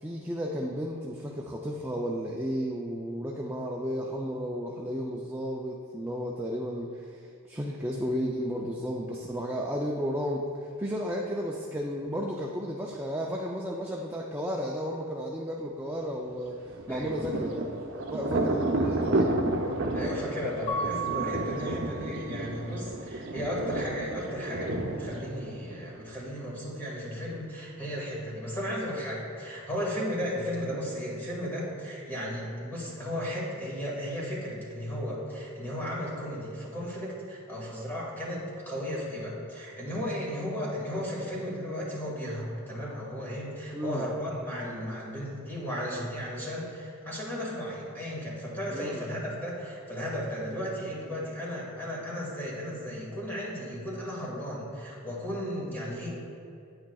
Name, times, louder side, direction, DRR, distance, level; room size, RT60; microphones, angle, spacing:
voice 1, 0.0-17.7 18.1-19.3 43.7-44.0 48.7-49.0, equal, 10° right, -2 dB, 0.4 m, -33 dB
Thunder, 16.7-26.2, right 2 dB, 65° right, 0.7 m, -31 dB
voice 2, 16.9-17.2 19.9-56.1, equal, 10° left, -6 dB, 1.9 m, -35 dB
Mallet percussion, 20.7-22.5, right 3 dB, 40° left, 1.0 m, -34 dB
9.3 x 8.7 x 2.3 m, 2.5 s
head